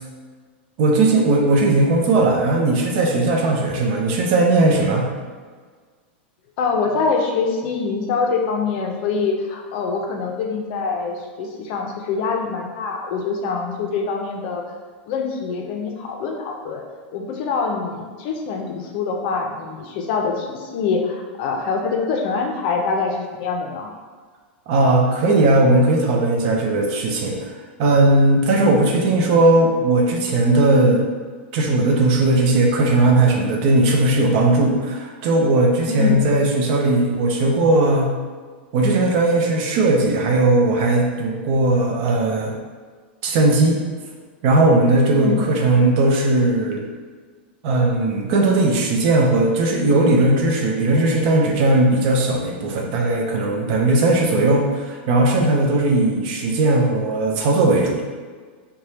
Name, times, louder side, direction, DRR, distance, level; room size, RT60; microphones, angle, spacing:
voice 1, 0.8-5.1 24.7-27.5 27.8-31.1 31.5-38.1 38.7-42.5 43.2-43.8 44.4-46.8 47.6-58.0, right 2 dB, 55° right, 0 dB, 0.6 m, -18 dB
voice 2, 6.6-14.6 15.1-16.8 17.1-23.9 28.5-28.8 35.9-36.3 45.1-45.5, left 4 dB, 55° left, 2 dB, 0.5 m, -24 dB
2.7 x 2.2 x 3.2 m, 1.6 s
supercardioid pair, 130°, 6 cm